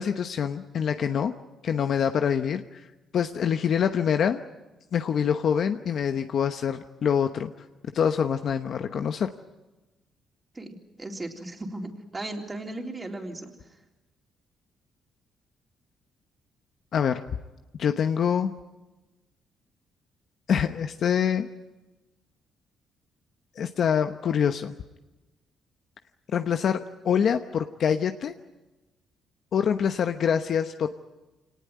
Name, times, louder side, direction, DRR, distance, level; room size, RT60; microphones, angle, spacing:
voice 1, 0.0-1.3 1.6-2.6 3.1-4.4 4.9-7.5 7.9-9.3 16.9-17.2 17.8-18.5 20.5-21.5 23.6-24.7 26.3-28.3 29.5-30.9, left 7 dB, 60° left, 7 dB, 1.0 m, -25 dB
voice 2, 10.5-13.8, right 2 dB, 25° right, 2 dB, 3.8 m, -37 dB
25.0 x 19.0 x 9.4 m, 1.1 s
cardioid pair, 90°, 0 cm